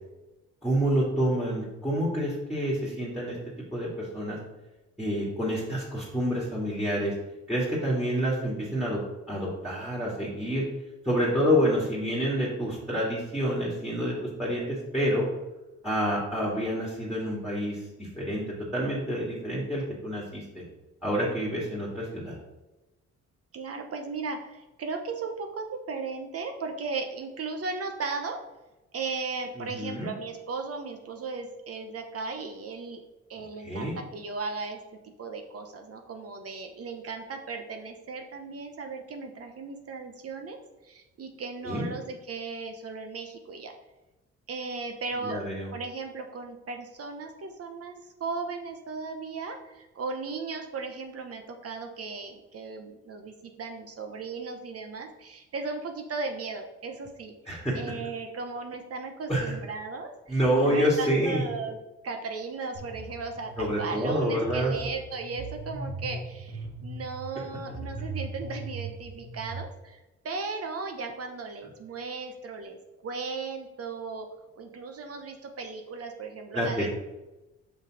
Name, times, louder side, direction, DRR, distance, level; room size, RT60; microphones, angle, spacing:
voice 1, 0.6-3.4 3.7-4.4 5.0-7.1 7.5-9.0 9.3-10.6 11.0-15.3 15.8-20.6 21.0-22.4 29.6-30.1 33.6-33.9 41.6-41.9 45.2-45.7 57.5-57.8 59.3-59.5 60.3-61.4 63.6-64.7 76.5-76.9, equal, ahead, -4 dB, 2.2 m, -28 dB
voice 2, 23.5-28.4 28.9-33.0 33.3-34.8 35.2-43.7 44.5-45.4 45.7-61.8 62.0-72.8 73.0-74.3 74.6-76.9, right 4 dB, 50° right, 5 dB, 0.9 m, -36 dB
sound 1, 62.7-69.6, right 2 dB, 80° right, 2.0 m, -39 dB
5.4 x 5.4 x 4.8 m, 1.0 s
cardioid pair, 90°, 30 cm